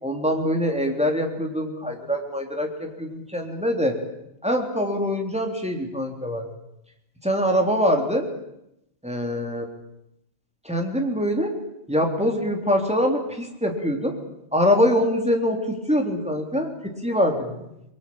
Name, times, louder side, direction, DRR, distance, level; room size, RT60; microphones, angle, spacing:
voice 1, 0.0-4.0 4.4-6.5 7.2-8.3 9.0-9.7 10.7-11.5 11.9-14.2 14.5-17.7, equal, 5° right, 2 dB, 3.6 m, -24 dB
24.0 x 23.5 x 8.7 m, 0.83 s
omnidirectional pair, 1.1 m